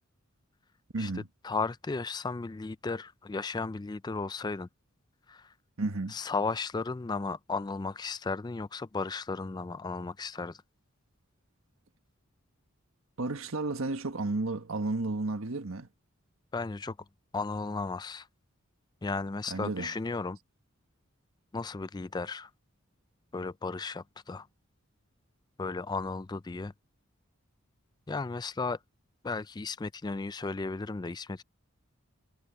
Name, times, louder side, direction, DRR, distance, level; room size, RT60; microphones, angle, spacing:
voice 1, 0.9-1.3 5.8-6.2 13.2-15.9 19.5-19.9, right 2 dB, 80° right, 1.5 m, -32 dB
voice 2, 1.4-4.7 5.3-5.5 6.1-10.6 16.5-17.0 17.3-18.3 19.0-20.4 21.5-22.5 23.3-24.5 25.6-26.7 28.1-28.8 29.2-31.4, left 4 dB, 20° left, 0.4 m, -34 dB
head